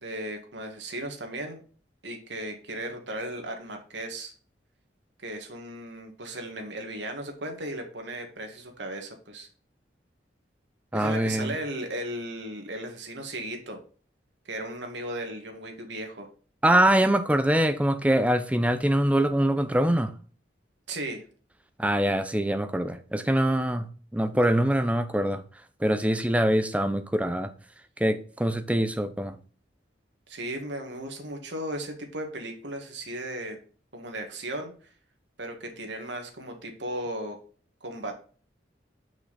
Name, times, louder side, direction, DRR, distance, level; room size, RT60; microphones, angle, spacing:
voice 1, 0.0-1.6 2.0-4.3 5.2-9.5 10.9-13.8 14.5-16.3 20.9-21.2 30.3-33.6 33.9-34.7 35.4-37.4 37.8-38.1, right 1 dB, 80° right, 1.8 m, -36 dB
voice 2, 10.9-11.6 16.6-20.1 21.8-25.4 25.8-27.5 28.0-29.4, right 1 dB, 5° right, 0.6 m, -24 dB
6.2 x 5.5 x 4.1 m
head